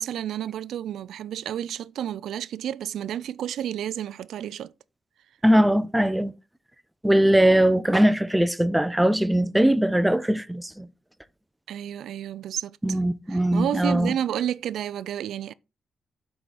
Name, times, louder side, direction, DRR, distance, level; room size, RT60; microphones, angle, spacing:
voice 1, 0.0-4.7 11.7-13.0 13.3-15.5, right 10 dB, 85° right, 0.3 m, -31 dB
voice 2, 5.4-6.3 7.0-10.9 12.8-14.1, right 1 dB, 5° right, 0.5 m, -20 dB
7.6 x 4.8 x 4.1 m
cardioid pair, 105°, 0 cm